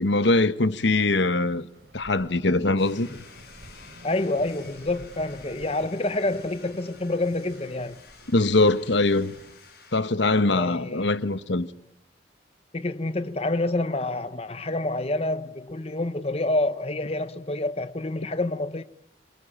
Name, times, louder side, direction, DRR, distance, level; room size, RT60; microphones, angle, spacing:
voice 1, 0.0-1.7 1.9-3.2 8.3-9.3 9.9-11.7, left 2 dB, 75° left, 1.2 m, -22 dB
sound 1, 1.7-9.6, right 1 dB, 65° right, 4.0 m, -50 dB
sound 2, 2.8-10.0, left 5 dB, 55° left, 5.2 m, -51 dB
voice 2, 4.0-8.0 10.5-11.1 12.7-18.8, left 2 dB, 35° left, 1.0 m, -28 dB
27.0 x 22.0 x 8.8 m
head